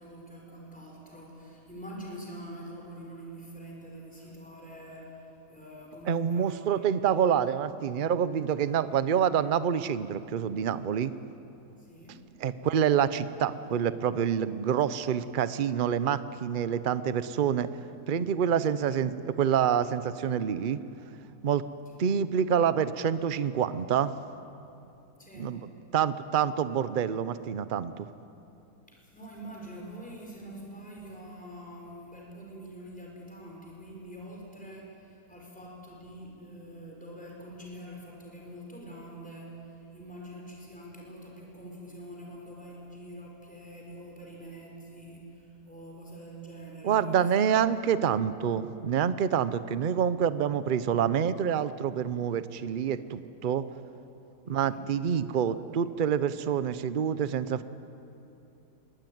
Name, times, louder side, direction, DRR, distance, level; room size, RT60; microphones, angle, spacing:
voice 1, 0.0-7.0 7.4-7.5 11.8-12.2 21.9-22.1 25.2-25.5 28.9-47.8 54.4-54.8, right 1 dB, 5° left, -2 dB, 4.9 m, -45 dB
voice 2, 6.1-11.1 12.4-17.7 18.1-20.8 21.4-21.6 22.0-24.1 25.4-25.6 25.9-28.1 46.8-53.6 54.5-57.6, right 8 dB, 50° right, 14 dB, 0.6 m, -27 dB
22.5 x 19.5 x 9.4 m, 2.8 s
omnidirectional pair, 1.7 m